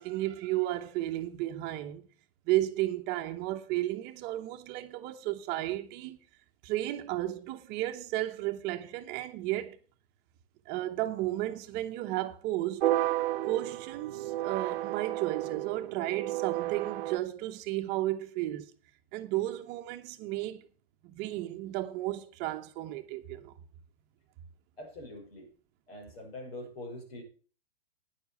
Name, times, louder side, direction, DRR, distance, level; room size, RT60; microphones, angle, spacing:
voice 1, 0.0-2.1 2.5-6.2 6.6-9.8 10.7-12.8 13.4-18.7 19.1-20.6 21.0-23.5, right 15 dB, 35° right, 0.9 m, -33 dB
sound 1, 12.8-17.2, right 15 dB, 60° right, 0.6 m, -32 dB
voice 2, 24.8-25.5 25.9-27.2, left 1 dB, 75° left, 6.0 m, -44 dB
10.0 x 7.0 x 6.9 m
hypercardioid pair, 120°, 30 cm